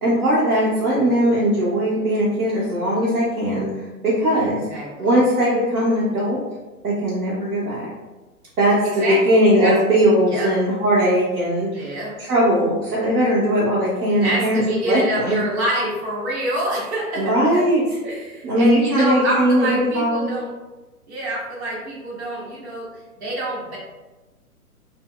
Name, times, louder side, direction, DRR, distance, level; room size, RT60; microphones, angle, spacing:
voice 1, 0.0-4.6 5.0-6.4 6.8-7.8 8.6-11.7 12.2-15.4 17.2-17.8 18.4-20.3, equal, 80° right, -8 dB, 1.1 m, -19 dB
voice 2, 4.4-5.1 8.8-9.8 10.3-10.5 11.7-12.2 14.1-17.6 18.0-20.5 21.1-22.9 23.2-23.8, right 1 dB, 45° right, -5 dB, 1.3 m, -26 dB
4.2 x 2.1 x 2.2 m, 1.1 s
hypercardioid pair, 140°, 44 cm